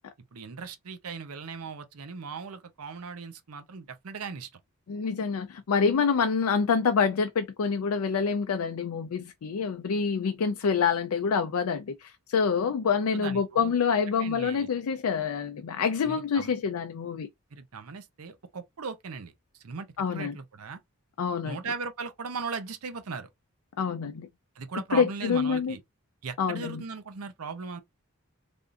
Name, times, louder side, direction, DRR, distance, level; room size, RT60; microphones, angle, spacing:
voice 1, 0.3-4.5 13.1-13.8 14.2-14.7 16.0-16.5 17.5-20.8 21.4-23.3 24.6-25.8 26.2-27.8, right 5 dB, 85° right, 0.6 m, -38 dB
voice 2, 4.9-17.3 20.0-20.3 21.2-21.6 23.8-24.3 24.9-25.7 26.4-26.8, left 6 dB, 90° left, 0.4 m, -27 dB
3.4 x 2.4 x 2.5 m
head